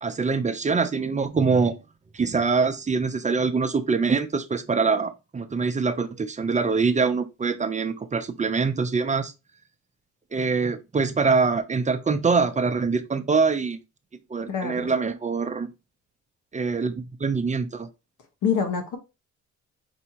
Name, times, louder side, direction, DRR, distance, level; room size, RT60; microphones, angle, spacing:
voice 1, 0.0-1.8 2.1-9.3 10.3-13.8 14.1-15.7 16.5-17.9, right 4 dB, 25° right, 0.6 m, -24 dB
voice 2, 14.5-14.9 18.4-19.0, left 6 dB, 80° left, 1.4 m, -25 dB
5.5 x 3.0 x 2.9 m
cardioid pair, 90°, 30 cm